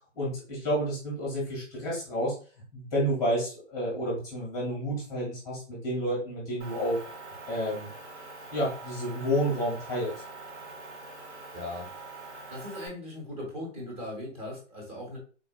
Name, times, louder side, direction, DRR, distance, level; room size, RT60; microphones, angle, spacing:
voice 1, 0.1-2.3 2.7-7.0 7.5-7.9 8.5-10.1, equal, 10° left, -5 dB, 0.8 m, -30 dB
Motor vehicle (road) / Engine, 6.6-12.9, right 3 dB, 65° right, 1.1 m, -44 dB
voice 2, 11.5-11.9 12.5-15.2, left 1 dB, 20° right, -2 dB, 1.0 m, -38 dB
3.8 x 2.4 x 2.2 m, 0.38 s
hypercardioid pair, 150°, 37 cm